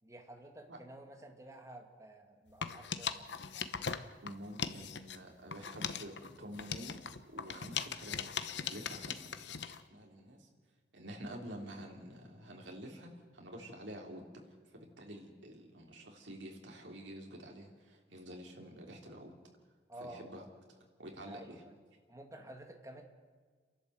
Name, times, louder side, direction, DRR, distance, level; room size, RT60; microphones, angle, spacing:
voice 1, 0.0-3.4 19.9-20.3 21.3-21.8 22.1-23.0, right 1 dB, 15° right, 3 dB, 2.0 m, -51 dB
sound 1, 2.5-5.2 5.5-9.8, left 7 dB, 70° left, 0.9 m, -40 dB
voice 2, 4.2-10.5 10.9-19.3 20.0-20.4 21.0-21.6, equal, 80° right, 1 dB, 3.3 m, -49 dB
30.0 x 11.5 x 7.9 m, 1.5 s
head